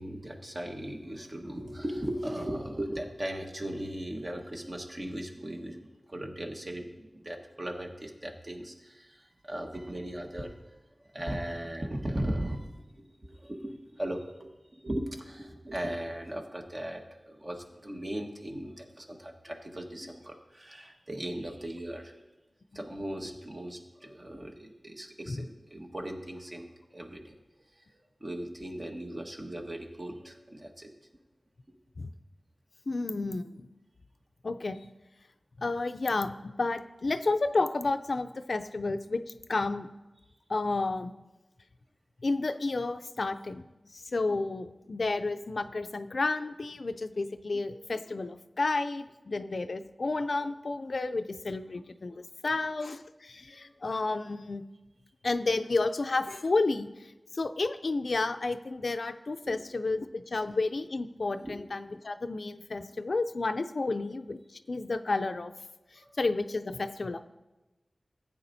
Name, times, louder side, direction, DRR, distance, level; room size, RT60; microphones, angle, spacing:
voice 1, 0.0-10.5 11.0-22.2 22.7-27.3 27.7-30.9 53.6-53.7 59.4-59.6 61.4-61.5 65.9-66.1, right 1 dB, 45° right, 2 dB, 1.4 m, -38 dB
voice 2, 32.9-33.7 34.4-34.9 35.6-39.2 39.5-39.9 40.5-41.1 42.2-43.6 43.9-54.6 55.2-65.5 65.9-67.2, left 3 dB, 70° left, 10 dB, 0.4 m, -31 dB
15.5 x 8.7 x 2.7 m, 1.1 s
wide cardioid pair, 45°, 0 cm